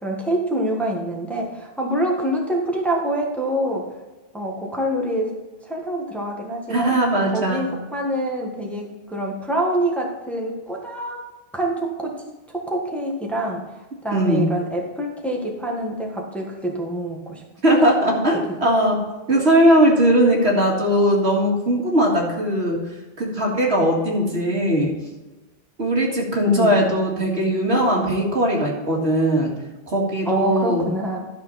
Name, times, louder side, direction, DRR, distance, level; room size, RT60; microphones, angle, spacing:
voice 1, 0.0-3.9 4.3-5.4 5.6-7.0 7.3-11.2 11.5-13.6 14.0-17.4 18.3-18.6 26.4-26.8 30.2-31.3, right 1 dB, ahead, -1 dB, 1.4 m, -26 dB
voice 2, 6.7-7.6 14.1-14.5 17.6-22.8 23.2-24.9 25.8-29.5 29.9-30.9, right 1 dB, 70° right, -2 dB, 2.4 m, -19 dB
12.0 x 6.7 x 4.1 m, 1.2 s
omnidirectional pair, 1.1 m